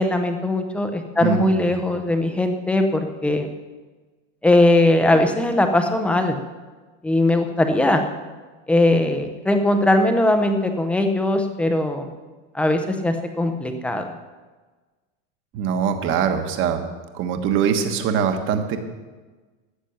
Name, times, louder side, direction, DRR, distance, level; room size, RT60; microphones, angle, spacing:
voice 1, 0.0-3.5 4.4-6.4 7.0-8.0 8.7-12.1 12.5-14.0, left 1 dB, 5° left, 5 dB, 0.6 m, -20 dB
voice 2, 1.2-1.7 15.5-16.8 17.1-18.8, right 7 dB, 30° right, 7 dB, 1.2 m, -22 dB
13.0 x 8.9 x 7.0 m, 1.3 s
supercardioid pair, 170°, 38 cm